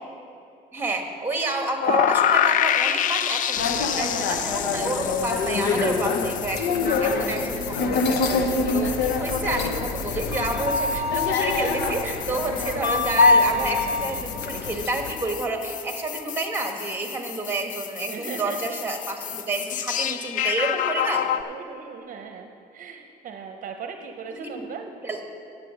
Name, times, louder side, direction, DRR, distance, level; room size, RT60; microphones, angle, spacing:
voice 1, 0.7-21.3 24.3-24.7 25.0-25.2, right 2 dB, 10° right, 3 dB, 1.4 m, -29 dB
sound 1, 1.8-21.4, left 10 dB, 50° left, 0.4 m, -29 dB
sound 2, 3.6-15.1, left 4 dB, 80° left, 0.9 m, -24 dB
voice 2, 18.1-18.8 20.7-20.8 21.5-24.9, right 6 dB, 50° right, 5 dB, 0.7 m, -38 dB
9.6 x 7.4 x 6.4 m, 2.6 s
cardioid pair, 110°, 17 cm